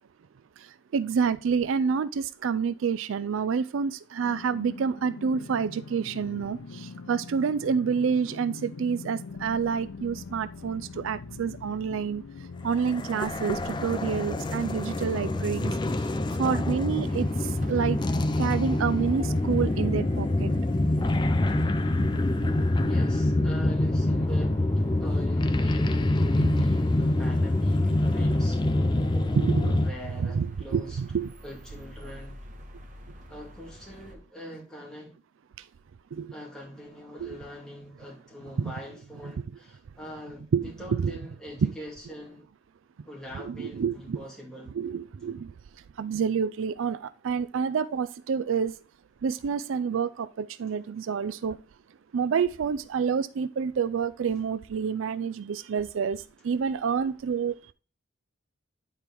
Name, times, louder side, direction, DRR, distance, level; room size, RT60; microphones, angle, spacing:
voice 1, 0.9-12.2 12.6-15.7 16.4-17.3 17.7-18.0 18.4-20.5 22.1-22.5 22.8-22.9 26.4-26.6 29.4-29.8 30.3-31.3 36.1-36.3 37.2-37.4 38.6-38.7 40.5-41.1 41.6-41.7 43.4-44.2 44.8-45.5 46.0-47.0 47.2-48.7 49.2-51.6 52.1-57.7, right 6 dB, 75° right, 0.4 m, -28 dB
sound 1, 4.2-22.1, left 3 dB, 85° left, 0.6 m, -43 dB
sound 2, 12.7-29.9, left 1 dB, 20° left, 0.4 m, -25 dB
sound 3, 17.0-34.1, right 1 dB, 40° right, 1.2 m, -49 dB
voice 2, 22.9-24.7 25.0-29.1 29.6-31.0 31.4-32.4 33.3-35.1 36.3-42.5 43.0-44.7 50.7-50.8, equal, 5° left, 2.6 m, -43 dB
9.9 x 4.5 x 3.4 m
head